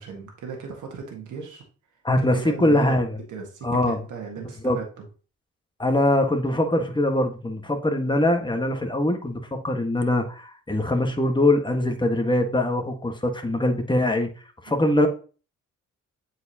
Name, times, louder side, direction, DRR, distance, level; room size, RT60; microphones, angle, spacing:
voice 1, 0.0-1.6 2.2-3.0 3.3-5.0, right 5 dB, 80° right, 1.6 m, -36 dB
voice 2, 2.0-3.2 3.6-4.0 4.6-4.8 5.8-14.3 14.6-15.1, left 1 dB, 15° left, 1.5 m, -22 dB
7.8 x 4.7 x 2.9 m
supercardioid pair, 60°, 30 cm